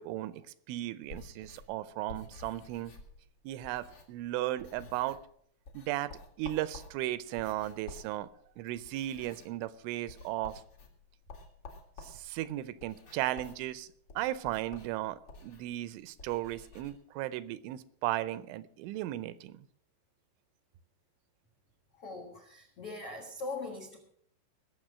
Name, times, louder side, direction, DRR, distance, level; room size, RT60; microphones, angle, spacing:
voice 1, 0.0-2.9 3.5-5.2 5.7-8.3 8.6-10.6 12.0-13.9 14.2-19.6, right 15 dB, 85° right, 16 dB, 3.0 m, -36 dB
sound 1, 1.0-4.3 4.6-5.3 5.6-16.9, left 2 dB, 45° left, 2.0 m, -51 dB
voice 2, 21.9-24.0, left 3 dB, 80° left, 1 dB, 1.3 m, -41 dB
20.0 x 7.4 x 6.2 m, 0.65 s
omnidirectional pair, 5.5 m